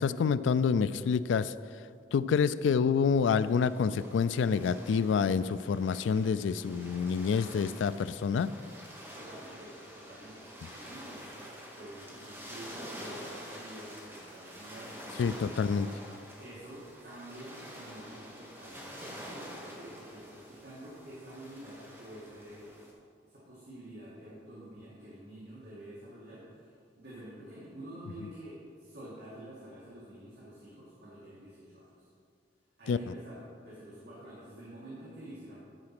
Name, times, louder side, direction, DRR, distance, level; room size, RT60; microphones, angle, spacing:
voice 1, 0.0-1.5 2.1-8.5 15.2-15.9 32.9-33.1, left 6 dB, 85° left, 15 dB, 0.3 m, -27 dB
sound 1, 3.1-22.9, equal, 10° right, 1.3 m, -48 dB
voice 2, 9.1-11.5 11.8-15.6 16.4-22.8 23.2-32.1 32.8-35.6, right 1 dB, 60° right, -8 dB, 2.2 m, -48 dB
11.5 x 4.8 x 6.0 m, 2.3 s
head